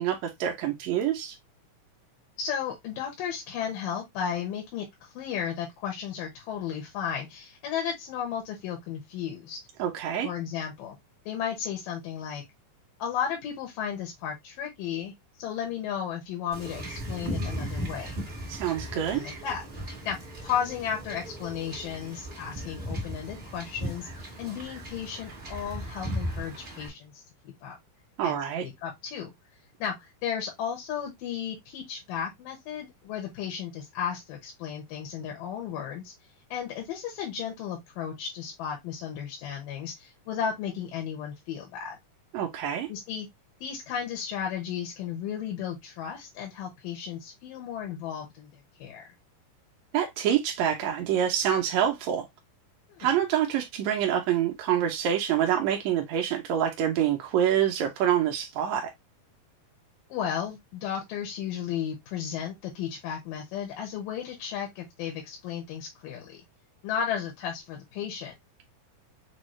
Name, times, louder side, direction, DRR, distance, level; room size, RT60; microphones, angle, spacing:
voice 1, 0.0-1.4 9.8-10.3 18.5-19.2 28.2-28.7 42.3-42.9 49.9-52.3 53.0-58.9, right 10 dB, 75° right, 1.7 m, -26 dB
voice 2, 2.4-9.6 10.2-11.0 11.3-12.4 13.0-15.1 15.4-18.1 19.1-19.6 20.0-20.2 20.4-27.8 28.2-28.4 28.6-29.3 29.8-36.1 36.5-42.0 42.9-43.3 43.6-49.0 52.9-53.1 60.1-66.4 66.8-68.3, left 8 dB, 85° left, 2.8 m, -34 dB
Wind / Ocean / Boat Water vehicle, 16.5-26.9, equal, 45° right, 0.7 m, -37 dB
6.2 x 2.4 x 3.0 m
omnidirectional pair, 3.8 m